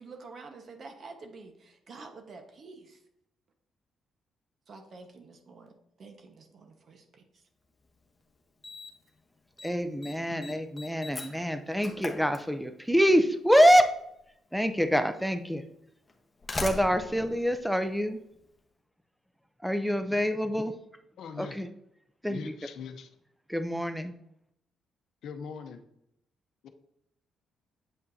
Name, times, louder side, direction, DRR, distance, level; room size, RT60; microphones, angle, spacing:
voice 1, 0.0-3.0 4.7-7.4, right 3 dB, 50° right, 5 dB, 1.2 m, -48 dB
Slam, 7.8-7.9 8.6-9.1 9.4-9.7 10.0-13.0 14.1-14.2 15.1-15.2 16.1-18.4, left 2 dB, 25° left, 1.0 m, -40 dB
voice 2, 9.6-13.9 14.5-15.6 16.6-18.2 19.6-20.8 21.4-21.7 22.2-22.5 23.5-24.1, equal, ahead, 8 dB, 0.5 m, -25 dB
voice 3, 21.2-21.6 22.3-23.1 25.2-25.8 26.6-26.7, left 6 dB, 75° left, 8 dB, 0.7 m, -41 dB
8.2 x 5.4 x 2.7 m, 0.77 s
cardioid pair, 90°, 0 cm